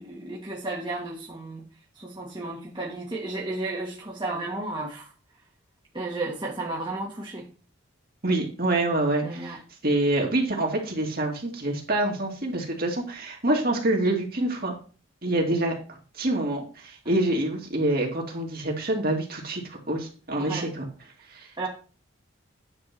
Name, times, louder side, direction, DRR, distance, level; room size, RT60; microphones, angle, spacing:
voice 1, 0.0-1.6 2.0-5.1 5.9-7.5 9.2-9.6 20.4-20.7 21.6-21.7, right 2 dB, 25° right, -4 dB, 1.7 m, -33 dB
voice 2, 8.2-9.6 9.8-14.7 15.2-15.7 16.2-20.8 21.3-21.5, right 1 dB, 45° right, 0 dB, 2.6 m, -26 dB
9.7 x 4.7 x 6.0 m, 0.37 s
head